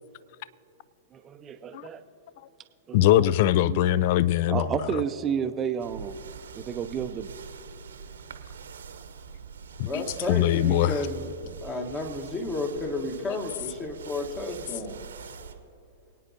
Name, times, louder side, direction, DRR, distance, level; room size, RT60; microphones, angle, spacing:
voice 1, 1.1-2.0 2.9-3.2 3.6-3.8 4.5-6.1 6.5-7.3, right 8 dB, 25° right, 9 dB, 0.6 m, -31 dB
voice 2, 2.9-5.0 9.8-10.9, left 13 dB, 50° left, 19 dB, 0.3 m, -22 dB
sound 1, 5.8-15.5, right 6 dB, 70° right, 0.9 m, -44 dB
voice 3, 9.8-15.0, left 2 dB, 20° left, 4 dB, 1.4 m, -32 dB
25.0 x 9.1 x 2.8 m, 2.5 s
figure-of-eight pair, 105°, 0 cm